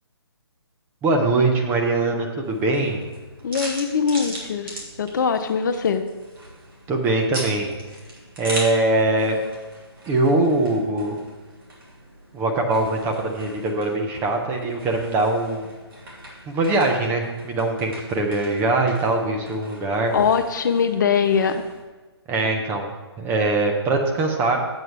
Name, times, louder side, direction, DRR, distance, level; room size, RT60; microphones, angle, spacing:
voice 1, 1.0-3.1 6.9-7.7 8.4-9.4 10.1-11.2 12.3-15.7 16.5-20.1 22.3-22.9 23.2-24.6, right 2 dB, 15° right, 2 dB, 0.9 m, -22 dB
sound 1, 2.4-21.8, right 1 dB, 55° right, 2.9 m, -40 dB
voice 2, 3.4-6.1 20.1-21.6, left 6 dB, 45° left, 9 dB, 0.5 m, -22 dB
10.5 x 8.2 x 3.4 m, 1.3 s
figure-of-eight pair, 145°, 14 cm